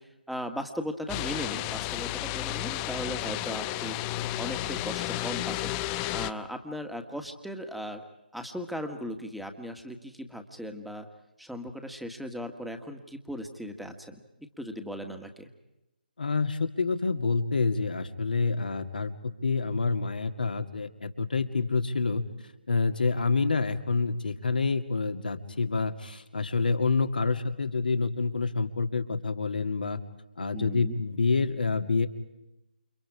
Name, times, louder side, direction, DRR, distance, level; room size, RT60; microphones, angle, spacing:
voice 1, 0.0-4.0 4.4-5.8 6.1-8.0 8.3-11.1 11.4-14.2 14.6-15.5 30.5-31.0, equal, ahead, 5 dB, 1.8 m, -37 dB
sound 1, 1.1-6.3, left 16 dB, 20° left, 0.8 m, -32 dB
voice 2, 16.2-22.2 22.7-30.0 30.4-32.1, left 4 dB, 70° left, 7 dB, 2.3 m, -27 dB
29.5 x 28.0 x 4.9 m, 0.94 s
figure-of-eight pair, 140°, 5 cm